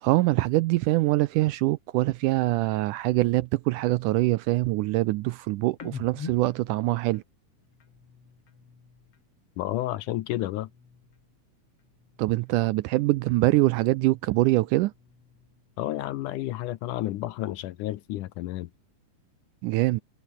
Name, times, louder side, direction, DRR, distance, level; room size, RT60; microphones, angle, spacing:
voice 1, 0.0-7.2 12.2-14.9 19.6-20.0, right 19 dB, 80° right, 1.9 m, -24 dB
sound 1, 5.7-9.3 9.6-11.5 11.7-13.6 14.0-15.8, left 6 dB, 45° left, 3.7 m, -47 dB
voice 2, 9.6-10.7 15.8-18.7, left 15 dB, 75° left, 2.2 m, -31 dB
omnidirectional pair, 4.0 m